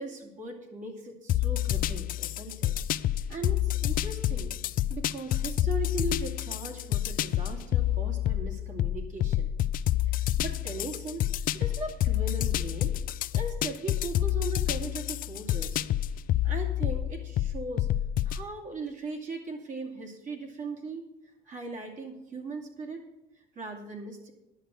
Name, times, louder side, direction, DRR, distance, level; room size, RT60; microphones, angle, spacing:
voice 1, 0.0-2.7 3.1-4.5 4.9-9.5 10.1-12.9 13.3-15.8 16.4-17.9 18.2-21.0 21.5-23.0 23.4-24.3, right 3 dB, 50° right, 1 dB, 2.6 m, -39 dB
sound 1, 1.3-18.4, left 13 dB, 55° left, 0.4 m, -28 dB
10.5 x 6.6 x 7.7 m, 0.95 s
cardioid pair, 110°, 17 cm